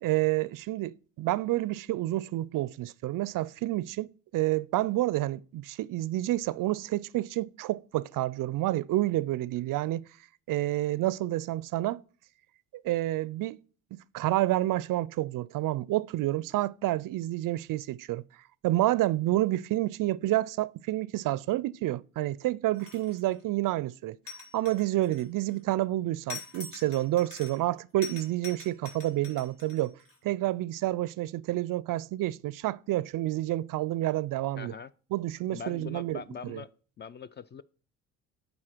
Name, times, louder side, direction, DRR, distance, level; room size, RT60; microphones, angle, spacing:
voice 1, 0.0-10.1 10.5-12.0 12.8-13.6 13.9-18.2 18.6-24.2 24.5-30.0 30.2-34.7 35.1-36.6, right 16 dB, 55° right, 0.4 m, -29 dB
sound 1, 22.7-23.3 24.3-25.6 26.3-27.7 28.0-30.2, left 5 dB, 55° left, 2.7 m, -44 dB
voice 2, 34.6-34.9 35.5-36.7 37.0-37.6, left 6 dB, 30° left, 0.4 m, -42 dB
8.6 x 4.1 x 4.5 m
hypercardioid pair, 65°, 41 cm